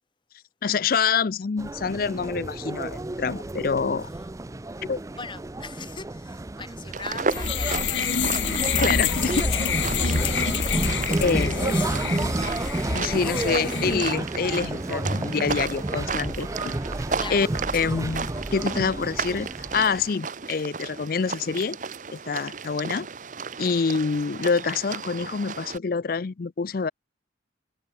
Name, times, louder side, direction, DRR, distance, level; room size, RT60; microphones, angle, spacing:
voice 1, 0.6-4.1 4.8-5.0 8.8-9.5 11.1-11.7 12.9-16.7 17.3-17.5 17.7-19.5 19.7-21.8 22.1-23.1 23.6-26.9, left 5 dB, 50° left, 0.5 m, -26 dB
sound 1, 1.6-20.1, right 2 dB, 15° right, 0.4 m, -31 dB
voice 2, 5.2-8.9 9.9-12.3 13.0-13.3 15.1-15.2 17.2-17.9, left 4 dB, 25° left, 2.6 m, -41 dB
sound 2, 6.9-25.8, right 5 dB, 45° right, 0.9 m, -34 dB
sound 3, 7.3-13.9, left 5 dB, 80° left, 1.5 m, -27 dB
head